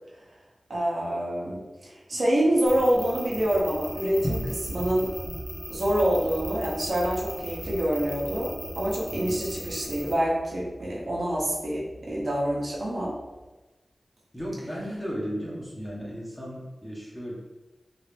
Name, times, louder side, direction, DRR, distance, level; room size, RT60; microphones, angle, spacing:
voice 1, 0.7-5.1 5.7-13.2, right 1 dB, 65° right, -5 dB, 1.1 m, -26 dB
sound 1, 2.7-10.1, equal, 20° right, 0.9 m, -39 dB
sound 2, 3.3-13.4, right 1 dB, 65° left, 1.4 m, -40 dB
voice 2, 14.3-17.3, equal, 15° left, -5 dB, 1.4 m, -35 dB
3.8 x 2.8 x 3.4 m, 1.1 s
cardioid pair, 50°, 0 cm